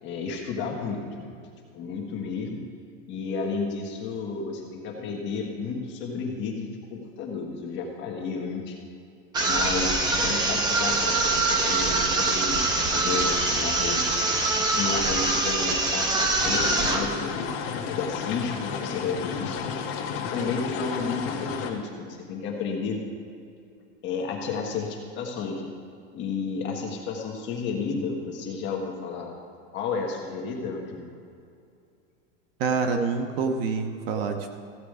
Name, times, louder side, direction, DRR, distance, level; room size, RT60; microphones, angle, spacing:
voice 1, 0.0-1.3 1.7-2.6 3.1-8.8 9.4-14.1 14.7-17.5 17.9-19.6 20.2-23.0 24.0-25.6 26.1-29.3 29.7-31.1, left 5 dB, 30° left, 0 dB, 1.6 m, -32 dB
sound 1, 9.3-17.1, right 2 dB, 10° right, 0.6 m, -24 dB
sound 2, 16.4-21.7, left 6 dB, 45° left, 1.4 m, -32 dB
voice 2, 32.6-34.5, right 5 dB, 50° right, 5 dB, 1.1 m, -26 dB
15.5 x 8.1 x 4.9 m, 2.5 s
supercardioid pair, 170°, 38 cm